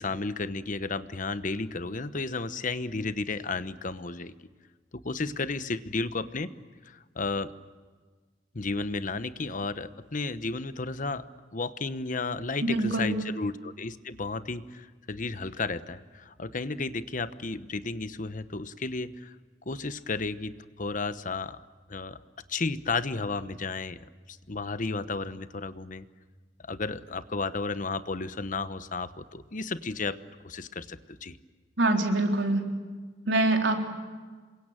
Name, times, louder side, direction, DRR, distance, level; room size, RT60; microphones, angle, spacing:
voice 1, 0.0-4.3 5.0-6.5 6.8-7.5 8.5-11.2 11.5-19.3 19.7-21.6 21.9-22.2 22.5-24.0 24.3-26.1 26.6-30.2 30.4-31.4, left 3 dB, 45° left, 13 dB, 1.0 m, -33 dB
voice 2, 12.6-13.1 31.8-32.7 33.3-33.8, right 2 dB, 90° right, 3 dB, 4.0 m, -24 dB
28.0 x 23.5 x 9.1 m, 1.4 s
head